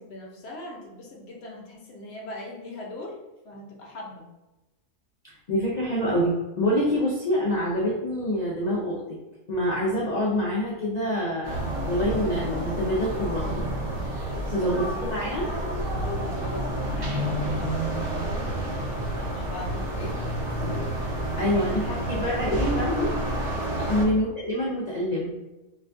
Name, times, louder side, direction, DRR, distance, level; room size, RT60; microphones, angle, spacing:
voice 1, 0.0-3.2 3.4-4.2 14.3-15.0 16.0-20.1 21.1-21.8 23.7-24.1, left 1 dB, 55° left, -1 dB, 0.8 m, -41 dB
voice 2, 5.2-9.2 9.5-13.7 14.5-15.5 21.3-23.1 23.9-25.5, equal, 80° left, -5 dB, 0.3 m, -26 dB
sound 1, 11.4-24.0, right 1 dB, 60° right, 1.1 m, -29 dB
4.0 x 2.2 x 2.5 m, 1.0 s
omnidirectional pair, 1.4 m